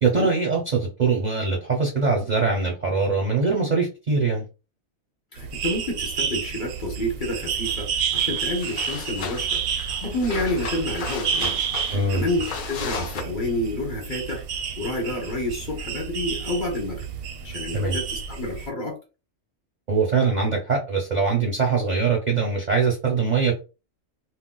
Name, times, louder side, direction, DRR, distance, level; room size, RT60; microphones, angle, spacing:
voice 1, 0.0-4.5 11.9-12.2 17.7-18.0 19.9-23.6, right 4 dB, 45° right, 0.6 m, -22 dB
voice 2, 5.3-11.6 11.8-14.4 14.8-17.0 17.4-19.0, left 1 dB, 40° left, 0.9 m, -29 dB
sound 1, 5.4-18.7, right 7 dB, 85° right, 1.0 m, -30 dB
sound 2, 7.6-7.8 8.1-13.2, left 5 dB, 65° left, 0.5 m, -36 dB
2.3 x 2.1 x 3.7 m
omnidirectional pair, 1.4 m